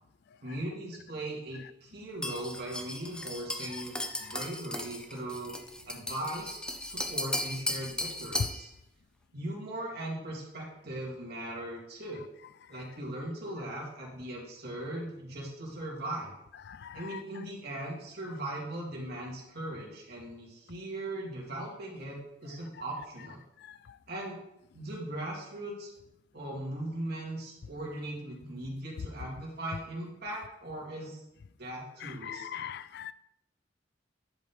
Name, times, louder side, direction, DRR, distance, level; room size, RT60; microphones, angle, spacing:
voice 1, 0.4-5.5 5.8-8.7 9.3-12.2 12.7-16.3 16.9-23.4 24.1-24.4 24.7-25.9 26.3-31.2 31.6-32.7, right 1 dB, 60° right, -3 dB, 2.8 m, -39 dB
sound 1, 2.2-8.6, left 1 dB, 5° left, 0.6 m, -36 dB
voice 2, 16.7-17.2 32.0-33.1, left 9 dB, 60° left, 16 dB, 0.3 m, -41 dB
10.5 x 5.4 x 4.2 m, 0.84 s
head